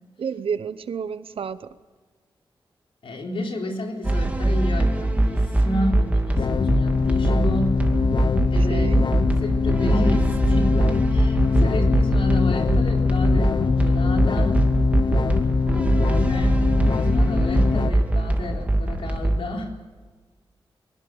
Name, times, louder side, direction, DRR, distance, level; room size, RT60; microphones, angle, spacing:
voice 1, 0.2-1.7 8.4-9.1, right 6 dB, 75° right, 14 dB, 0.9 m, -30 dB
voice 2, 3.0-7.8 8.5-9.0 9.4-10.8 11.1-14.6 15.7-16.7 17.1-19.7, left 1 dB, 70° left, 2 dB, 4.0 m, -31 dB
sound 1, 4.0-19.4, right 1 dB, 15° right, 2.5 m, -22 dB
sound 2, 6.4-17.9, left 5 dB, 55° left, 0.6 m, -23 dB
22.5 x 19.0 x 8.0 m, 1.4 s
wide cardioid pair, 85°, 9 cm